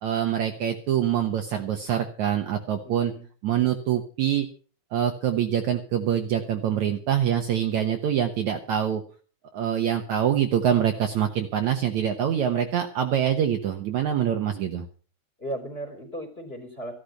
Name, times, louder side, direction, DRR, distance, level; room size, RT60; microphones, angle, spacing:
voice 1, 0.0-3.1 3.4-4.5 4.9-9.0 9.5-14.9, right 9 dB, 65° right, 4 dB, 2.1 m, -25 dB
voice 2, 2.8-3.2 15.4-16.9, right 1 dB, 15° left, 4 dB, 3.2 m, -36 dB
15.0 x 12.0 x 5.7 m, 0.41 s
omnidirectional pair, 4.2 m